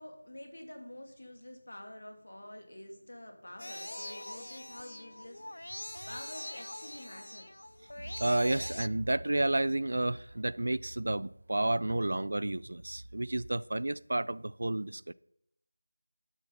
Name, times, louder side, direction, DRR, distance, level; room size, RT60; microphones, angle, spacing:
voice 1, 0.0-7.5, left 1 dB, 75° left, 2.8 m, -48 dB
sound 1, 3.6-8.9, left 1 dB, 90° left, 0.3 m, -43 dB
voice 2, 8.0-15.1, right 1 dB, 60° right, 0.4 m, -31 dB
11.5 x 7.1 x 5.5 m
figure-of-eight pair, 175°, 0 cm